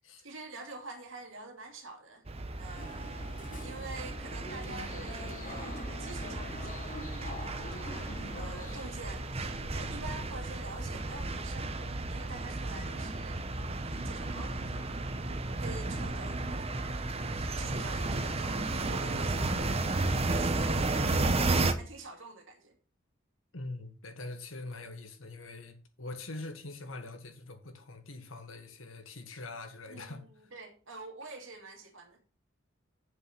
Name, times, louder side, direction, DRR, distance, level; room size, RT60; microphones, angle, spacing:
voice 1, 0.2-2.3 2.6-3.1 3.6-13.4 13.9-19.4 20.2-22.7 29.9-32.2, right 3 dB, 70° right, 2.4 m, -47 dB
sound 1, 2.3-21.7, right 2 dB, 30° right, 0.8 m, -33 dB
sound 2, 2.8-11.2, left 1 dB, 40° left, 1.6 m, -46 dB
voice 2, 23.5-30.3, left 2 dB, 80° left, 1.7 m, -43 dB
7.4 x 6.2 x 6.0 m
head